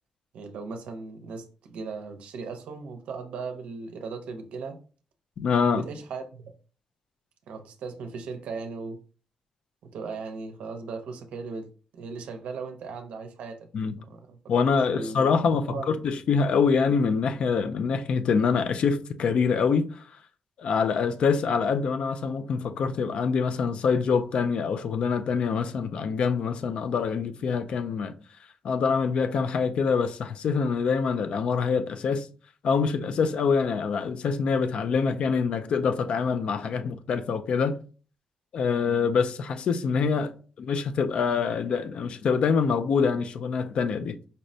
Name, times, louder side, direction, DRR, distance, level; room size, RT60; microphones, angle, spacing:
voice 1, 0.3-4.8 5.7-6.5 7.5-9.0 9.8-11.7 11.9-13.6 14.0-14.4 14.9-16.0, right 4 dB, 90° right, 0.5 m, -37 dB
voice 2, 5.4-5.8 13.7-14.0 14.5-20.0 20.6-28.1 28.6-32.3 32.6-37.7 38.5-44.2, left 5 dB, 55° left, 0.3 m, -25 dB
5.2 x 2.0 x 2.6 m
wide cardioid pair, 155°, 2 cm